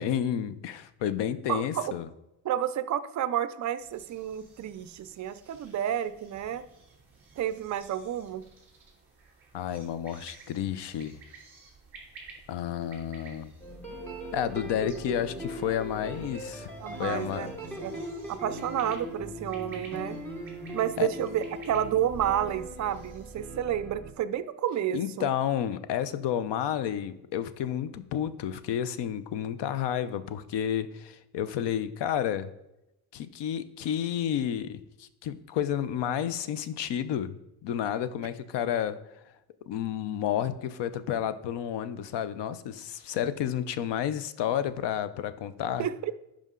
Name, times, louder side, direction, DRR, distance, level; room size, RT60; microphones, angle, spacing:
voice 1, 0.0-2.1 9.5-11.2 12.5-13.5 14.3-16.7 17.0-17.5 21.0-21.1 24.9-32.5 33.1-37.3 37.6-39.0 39.7-45.9, left 9 dB, 75° left, 14 dB, 0.7 m, -31 dB
voice 2, 1.5-1.8 2.4-6.6 7.4-8.4 16.8-17.5 17.8-17.9 18.3-20.2 20.7-25.3 45.8-46.2, right 10 dB, 45° right, 14 dB, 0.4 m, -30 dB
sound 1, 3.8-23.3, right 4 dB, 30° right, 2.8 m, -54 dB
Sweet melodical guitar tune, 13.6-24.1, right 1 dB, 5° left, 1.2 m, -40 dB
11.0 x 5.1 x 3.7 m, 0.89 s
cardioid pair, 155°, 42 cm